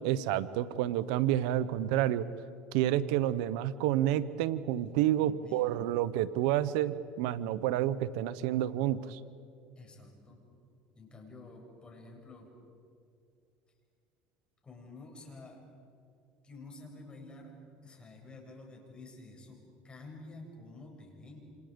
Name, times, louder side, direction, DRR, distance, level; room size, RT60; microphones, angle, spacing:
voice 1, 0.0-2.3 2.7-9.2, right 12 dB, 80° right, 16 dB, 0.8 m, -29 dB
voice 2, 5.1-5.9 9.7-10.4 10.9-12.5 14.6-15.6 16.4-17.6 17.8-21.4, left 2 dB, 25° left, 1 dB, 7.1 m, -50 dB
28.5 x 27.5 x 5.2 m, 2.4 s
supercardioid pair, 110°, 4 cm